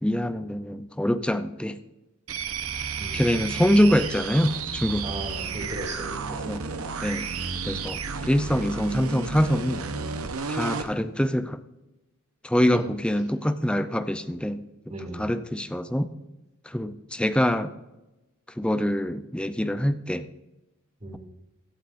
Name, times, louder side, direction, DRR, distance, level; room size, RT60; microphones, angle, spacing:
voice 1, 0.0-1.8 3.1-5.1 6.5-6.6 7.0-7.3 7.6-9.8 10.5-11.6 12.4-16.1 16.7-17.7 18.6-20.2, equal, 5° left, 10 dB, 0.5 m, -25 dB
sound 1, 2.3-10.9, right 5 dB, 80° right, 1.0 m, -32 dB
voice 2, 3.0-3.3 5.0-6.2 12.7-12.8 14.9-15.2 21.0-21.2, right 1 dB, 30° right, 1 dB, 2.7 m, -36 dB
16.5 x 11.5 x 2.6 m, 0.99 s
head